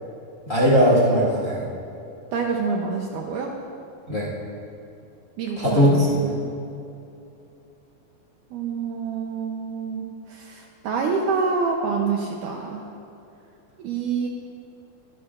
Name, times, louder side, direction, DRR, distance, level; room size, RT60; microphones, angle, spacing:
voice 1, 0.5-1.6 4.1-4.3 5.6-6.2, equal, 25° left, -7 dB, 2.2 m, -19 dB
voice 2, 2.3-3.5 5.4-6.4 8.5-12.8 13.8-14.3, right 5 dB, 70° right, 1 dB, 2.1 m, -27 dB
25.0 x 12.0 x 2.5 m, 2.7 s
omnidirectional pair, 4.3 m